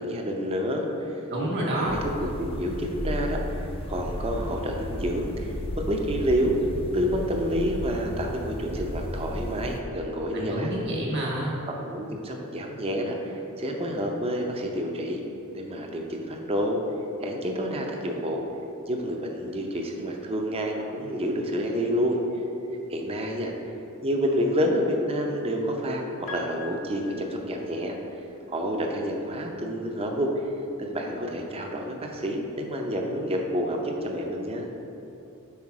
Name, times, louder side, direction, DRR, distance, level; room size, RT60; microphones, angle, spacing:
voice 1, 0.0-1.2 1.7-3.4 3.9-6.6 6.9-10.7 11.7-15.2 15.5-16.8 17.2-18.4 18.9-22.2 22.9-23.5 24.0-27.9 28.5-30.5 30.8-34.7, equal, 25° right, 1 dB, 0.6 m, -28 dB
voice 2, 1.3-2.0 10.3-11.5, right 1 dB, 55° right, -4 dB, 1.4 m, -28 dB
sound 1, 1.9-9.8, left 1 dB, 25° left, 0.4 m, -34 dB
Piano, 26.3-28.3 29.6-29.7, left 3 dB, 85° left, 0.7 m, -42 dB
5.7 x 4.4 x 4.7 m, 2.9 s
head